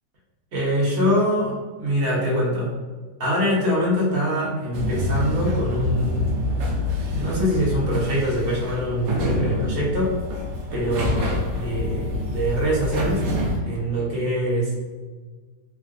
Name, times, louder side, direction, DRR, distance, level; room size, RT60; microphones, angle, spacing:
voice 1, 0.5-2.7 3.2-6.4 7.1-10.2 10.7-13.2 13.6-14.8, equal, 40° right, -6 dB, 1.0 m, -24 dB
sound 1, 4.7-13.6, left 1 dB, 85° right, 1.2 m, -26 dB
3.6 x 2.4 x 2.3 m, 1.4 s
omnidirectional pair, 1.8 m